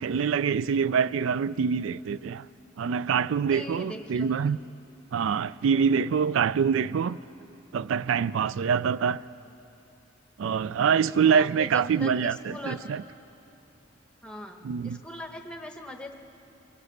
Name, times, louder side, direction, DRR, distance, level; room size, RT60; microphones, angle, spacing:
voice 1, 0.0-2.4 2.8-4.6 5.1-7.2 7.7-9.2 10.4-13.0 14.6-15.0, right 6 dB, 90° right, 0.3 m, -25 dB
voice 2, 3.5-4.3 11.2-12.9 14.2-16.1, left 1 dB, 5° left, 1.1 m, -40 dB
24.0 x 16.5 x 6.6 m
head